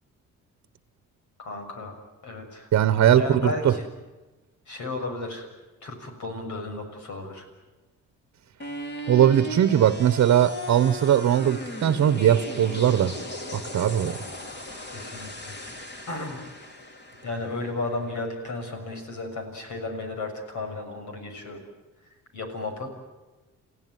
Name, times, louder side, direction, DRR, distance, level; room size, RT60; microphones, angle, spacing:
voice 1, 1.4-1.9 2.2-2.7 3.1-3.9 4.7-5.5 5.8-7.5 14.9-15.6 16.1-16.4 17.2-21.6 22.3-22.9, left 2 dB, 75° left, 6.7 m, -33 dB
voice 2, 2.7-3.7 9.1-13.2 13.5-14.2, right 10 dB, 60° right, 1.1 m, -20 dB
sound 1, 8.6-18.6, left 1 dB, 35° left, 3.9 m, -37 dB
29.0 x 16.0 x 9.3 m
cardioid pair, 90°, 30 cm